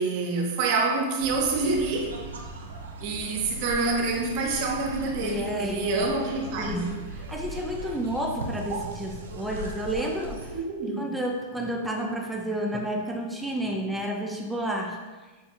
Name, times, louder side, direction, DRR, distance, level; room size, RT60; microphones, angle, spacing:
voice 1, 0.0-2.2 3.0-6.8 8.7-8.9 10.5-11.1, right 3 dB, 50° right, 1 dB, 0.7 m, -27 dB
sound 1, 1.2-10.6, right 1 dB, 85° right, 0.5 m, -39 dB
voice 2, 5.2-6.2 6.6-7.0 7.3-10.5 11.0-15.0, right 1 dB, 5° right, 1 dB, 0.4 m, -31 dB
5.2 x 2.2 x 2.8 m, 1.3 s
hypercardioid pair, 115°, 0 cm